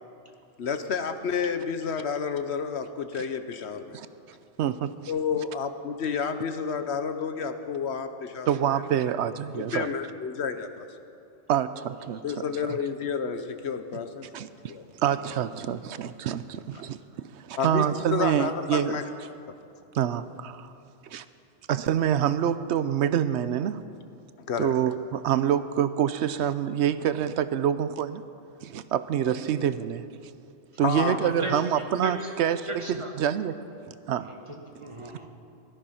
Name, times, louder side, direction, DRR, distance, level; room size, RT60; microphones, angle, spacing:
voice 1, 0.6-4.0 5.1-8.8 9.5-10.9 12.2-14.3 14.7-14.8 17.6-19.0 19.5-19.6 24.5-24.7 30.8-31.3, left 6 dB, 75° left, 9 dB, 1.1 m, -30 dB
voice 2, 3.9-4.9 8.5-9.9 11.5-12.2 12.7-12.8 14.3-14.7 15.0-19.0 19.9-20.7 21.0-21.3 21.7-23.8 24.6-28.2 28.6-30.1 30.8-33.6 33.8-34.3 35.0-35.1, right 9 dB, 85° right, 13 dB, 0.9 m, -27 dB
voice 3, 31.1-31.5 32.0-32.3 32.7-33.1 34.3-35.3, right 2 dB, 25° right, 1 dB, 1.7 m, -36 dB
18.5 x 13.5 x 5.6 m, 2.6 s
omnidirectional pair, 1.1 m